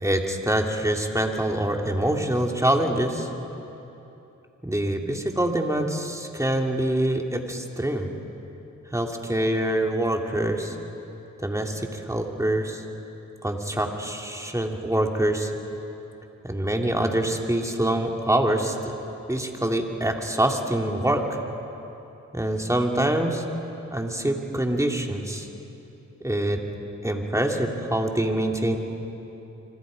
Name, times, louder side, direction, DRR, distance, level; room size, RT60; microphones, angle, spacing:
voice 1, 0.0-3.3 4.6-8.1 8.9-10.8 11.4-12.8 13.4-15.5 16.4-18.8 19.3-21.4 22.3-23.4 23.9-25.5 26.2-26.6 27.0-28.8, right 1 dB, 10° right, 2 dB, 2.6 m, -25 dB
25.5 x 25.5 x 5.2 m, 3.0 s
cardioid pair, 60°, 32 cm